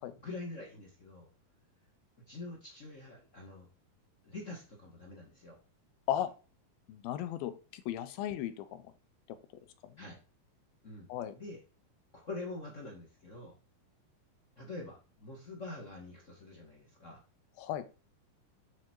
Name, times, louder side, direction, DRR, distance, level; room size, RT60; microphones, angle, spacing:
voice 1, 0.0-1.3 2.3-3.7 4.2-5.6 10.0-10.2 10.8-11.1 11.3-11.6 12.1-13.6 14.6-17.2, left 2 dB, 55° left, 0 dB, 0.8 m, -45 dB
voice 2, 6.9-8.9 9.8-9.9 11.1-11.4 17.6-17.8, left 11 dB, 80° left, 12 dB, 2.6 m, -36 dB
9.1 x 4.5 x 4.5 m, 0.33 s
omnidirectional pair, 4.3 m